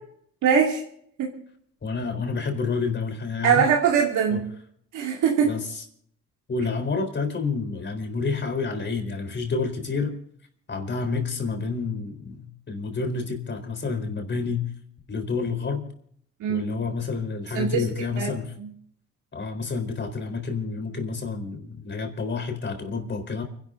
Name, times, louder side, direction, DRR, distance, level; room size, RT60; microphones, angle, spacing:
voice 1, 0.4-0.8 1.2-1.3 3.4-4.4 4.9-5.5 16.4-16.7 17.5-17.8 18.2-18.3 18.6-18.7, right 7 dB, 80° right, -1 dB, 2.4 m, -21 dB
voice 2, 1.8-3.7 4.3-4.4 5.4-5.8 6.5-10.2 10.7-14.7 15.1-15.8 16.5-18.5 19.3-23.4, left 4 dB, 40° left, 6 dB, 4.1 m, -29 dB
29.5 x 11.5 x 2.6 m, 0.65 s
cardioid pair, 90°, 30 cm